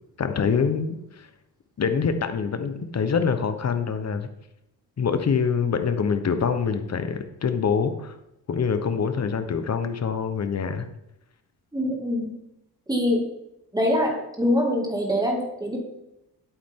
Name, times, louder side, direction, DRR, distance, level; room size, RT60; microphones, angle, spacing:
voice 1, 0.2-1.3 1.8-4.3 5.0-8.2 8.5-10.9, left 6 dB, 40° left, 9 dB, 1.0 m, -25 dB
voice 2, 11.7-12.3 12.9-13.3 13.7-15.8, left 1 dB, 10° right, 0 dB, 2.4 m, -24 dB
11.0 x 8.6 x 3.8 m, 0.86 s
cardioid pair, 120°, 41 cm